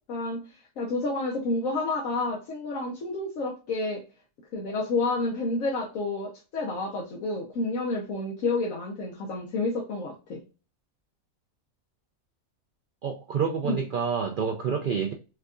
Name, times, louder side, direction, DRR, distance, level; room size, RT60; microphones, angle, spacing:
voice 1, 0.1-0.4 0.8-4.0 4.5-10.4 13.7-13.8, left 2 dB, 75° left, 1.2 m, -29 dB
voice 2, 13.0-15.1, right 6 dB, 80° right, 0.4 m, -28 dB
4.5 x 2.3 x 2.5 m
omnidirectional pair, 1.5 m